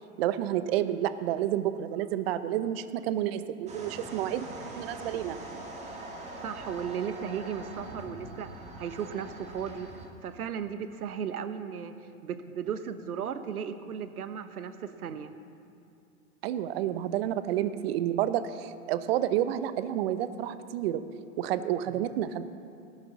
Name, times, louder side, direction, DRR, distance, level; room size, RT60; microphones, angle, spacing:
voice 1, 0.2-4.5 4.8-5.4 16.4-21.0 21.4-22.4, right 11 dB, 45° right, 12 dB, 0.8 m, -30 dB
sound 1, 3.7-10.1, right 2 dB, 15° right, 1.9 m, -43 dB
voice 2, 6.4-8.5 8.8-9.9 10.2-11.9 12.2-15.3, right 7 dB, 80° right, 10 dB, 1.2 m, -35 dB
18.5 x 11.5 x 4.1 m, 2.7 s
hypercardioid pair, 125°, 44 cm